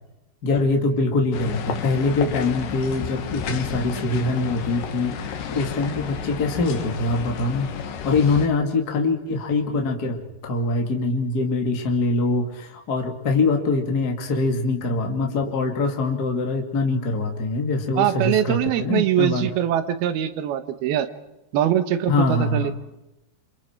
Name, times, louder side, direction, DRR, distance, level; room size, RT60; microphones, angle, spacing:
voice 1, 0.4-5.2 5.5-7.7 8.0-19.5 22.1-22.7, left 3 dB, 30° left, 2 dB, 2.4 m, -23 dB
sound 1, 1.3-8.5, left 7 dB, 65° left, 3.0 m, -32 dB
voice 2, 18.0-21.1 21.5-22.7, right 11 dB, 85° right, 11 dB, 3.2 m, -22 dB
28.0 x 27.0 x 4.6 m, 0.93 s
omnidirectional pair, 4.3 m